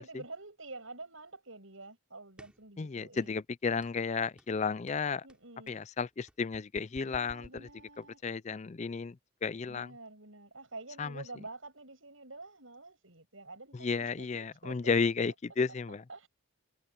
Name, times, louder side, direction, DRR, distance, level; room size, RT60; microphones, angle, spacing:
voice 1, 0.0-3.4 5.2-5.8 7.0-8.2 9.7-14.9 15.9-16.3, right 3 dB, 70° right, 7.3 m, -48 dB
sound 1, 2.4-2.7 3.2-3.5 3.8-4.0 4.4-4.6 4.9-8.2, equal, 5° right, 3.6 m, -55 dB
voice 2, 2.8-5.2 5.7-7.5 8.2-9.2 9.4-9.9 11.0-11.1 13.8-14.4 14.7-16.0, left 5 dB, 30° left, 0.4 m, -32 dB
head